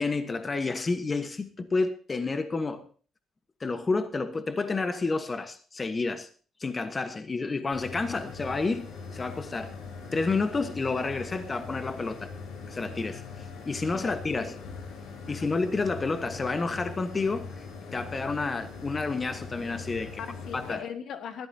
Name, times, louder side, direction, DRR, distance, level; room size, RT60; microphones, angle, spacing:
voice 1, 0.0-2.9 3.6-6.3 6.6-9.7 10.1-12.3 12.7-14.5 15.3-17.5 17.9-20.1 20.5-20.8, left 3 dB, 30° left, 1.2 m, -30 dB
sound 1, 7.7-20.7, left 4 dB, 90° left, 2.9 m, -41 dB
voice 2, 13.9-14.6 15.3-15.5 20.2-21.5, left 7 dB, 70° left, 1.5 m, -39 dB
19.5 x 13.0 x 2.8 m
cardioid pair, 90°, 0 cm